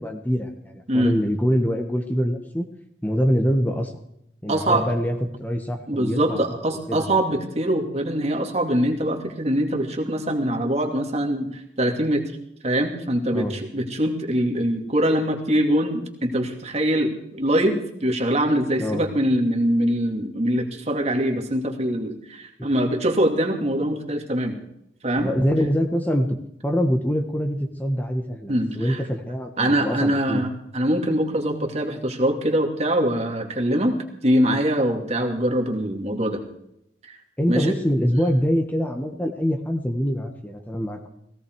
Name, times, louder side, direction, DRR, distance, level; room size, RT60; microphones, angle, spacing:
voice 1, 0.0-2.7 3.0-3.9 4.4-6.4 6.9-7.1 13.3-13.5 18.8-19.0 22.6-22.7 25.2-26.3 26.6-30.4 37.4-41.1, equal, 10° left, 4 dB, 1.3 m, -24 dB
voice 2, 4.5-4.9 5.9-12.3 12.6-24.6 25.0-25.3 28.5-29.0 29.6-34.0 34.2-36.4 37.5-37.7, right 1 dB, 40° right, 3 dB, 2.6 m, -23 dB
17.5 x 17.0 x 4.7 m, 0.75 s
head